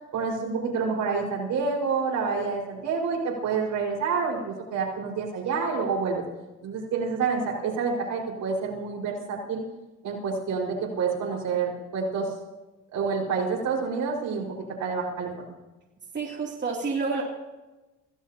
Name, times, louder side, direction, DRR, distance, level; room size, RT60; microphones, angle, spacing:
voice 1, 0.1-6.2 6.6-9.6 10.0-12.3 12.9-14.5 14.8-15.3, right 5 dB, 75° right, -2 dB, 5.6 m, -28 dB
voice 2, 16.1-17.2, right 4 dB, 35° right, -2 dB, 3.2 m, -29 dB
28.0 x 17.0 x 3.0 m, 1.1 s
cardioid pair, 90°, 30 cm